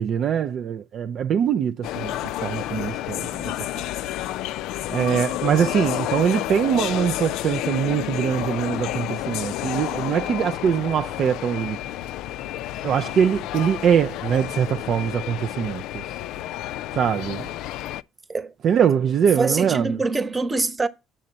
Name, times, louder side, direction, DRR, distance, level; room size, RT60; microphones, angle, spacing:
voice 1, 0.0-3.8 4.9-11.8 12.8-16.0 16.9-17.5 18.6-20.0, right 8 dB, 55° right, 0.4 m, -23 dB
sound 1, 1.8-18.0, left 14 dB, 70° left, 0.3 m, -30 dB
voice 2, 19.4-20.9, right 3 dB, 25° right, 1.0 m, -24 dB
7.5 x 6.5 x 4.0 m
hypercardioid pair, 60°, 0 cm